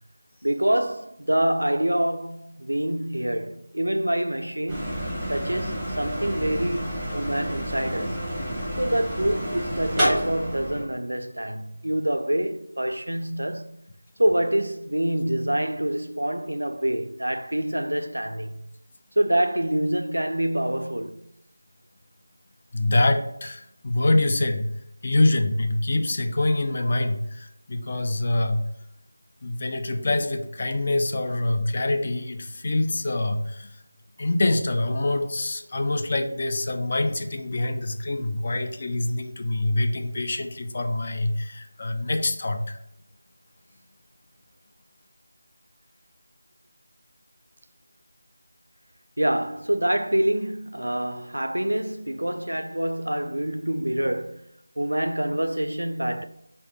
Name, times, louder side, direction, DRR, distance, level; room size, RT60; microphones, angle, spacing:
voice 1, 0.4-8.2 8.8-13.8 14.2-18.6 19.2-21.2 49.2-54.5 54.8-56.3, right 1 dB, 85° right, 0.3 m, -26 dB
sound 1, 4.7-10.8, equal, ahead, 0.9 m, -30 dB
voice 2, 22.7-24.7 25.0-28.6 29.4-33.7 34.2-42.8, left 2 dB, 35° left, 0.4 m, -25 dB
4.2 x 2.2 x 2.6 m
figure-of-eight pair, 165°, 0 cm